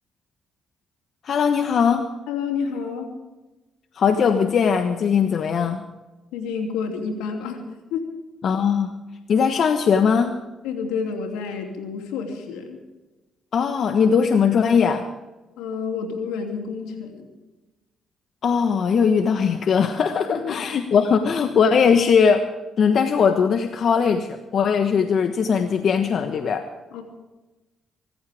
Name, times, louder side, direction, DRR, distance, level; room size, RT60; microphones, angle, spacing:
voice 1, 1.2-2.1 3.9-5.8 8.4-9.0 9.3-10.3 13.5-15.0 18.4-22.4 22.8-26.7, left 6 dB, 60° left, 7 dB, 1.2 m, -20 dB
voice 2, 2.3-3.1 6.3-7.6 7.9-8.0 10.6-12.8 15.6-17.2 20.3-20.7 26.9-27.0, left 5 dB, 85° left, 3 dB, 2.9 m, -29 dB
25.0 x 14.5 x 3.6 m, 1.1 s
supercardioid pair, 55°, 0 cm